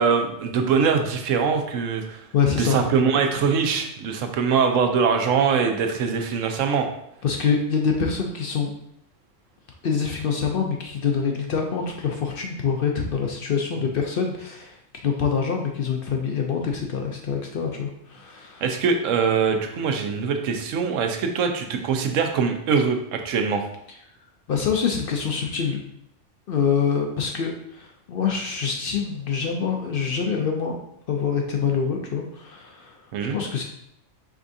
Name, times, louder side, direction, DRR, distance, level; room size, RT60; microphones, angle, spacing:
voice 1, 0.0-2.2 2.5-6.9 18.6-23.6 33.1-33.4, right 6 dB, 85° right, 5 dB, 1.0 m, -22 dB
voice 2, 2.3-2.8 7.2-8.7 9.8-14.8 15.0-18.6 24.5-25.8 26.5-30.8 31.1-33.0 33.3-33.6, left 6 dB, 60° left, 2 dB, 0.6 m, -25 dB
4.9 x 3.5 x 2.6 m, 0.75 s
omnidirectional pair, 1.3 m